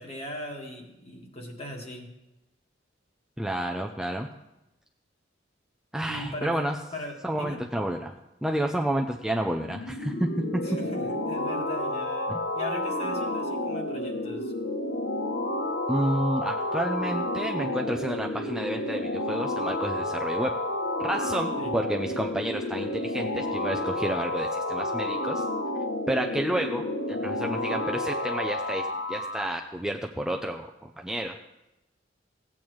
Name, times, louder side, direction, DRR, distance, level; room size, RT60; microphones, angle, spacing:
voice 1, 0.0-2.1 6.1-6.6 6.9-7.6 10.6-14.5 21.6-21.7, left 1 dB, 35° left, 1 dB, 1.7 m, -39 dB
voice 2, 3.4-4.3 5.9-6.7 7.2-8.1 8.4-10.6 12.3-12.4 15.9-20.5 21.0-25.5 26.1-31.4, right 1 dB, 5° right, 2 dB, 0.4 m, -30 dB
sound 1, 9.6-29.5, left 1 dB, 80° left, 0.9 m, -30 dB
16.5 x 8.6 x 3.1 m, 0.96 s
head